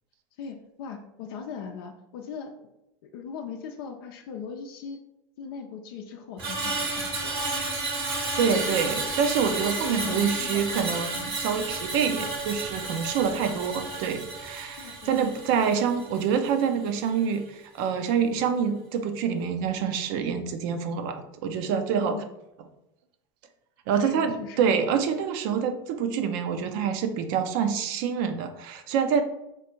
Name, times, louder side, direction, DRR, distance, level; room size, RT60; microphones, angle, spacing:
voice 1, 0.4-2.7 3.0-5.0 5.4-7.5 9.8-10.8 12.1-12.3 13.2-13.4 14.8-15.2 22.0-22.2 24.0-24.7, left 6 dB, 75° left, 3 dB, 0.5 m, -40 dB
Screech, 6.4-16.7 17.1-17.3, right 3 dB, 85° right, 1.4 m, -32 dB
voice 2, 8.4-22.2 23.9-29.2, right 7 dB, 65° right, 8 dB, 0.5 m, -26 dB
3.2 x 2.5 x 4.3 m, 0.88 s
supercardioid pair, 100°, 12 cm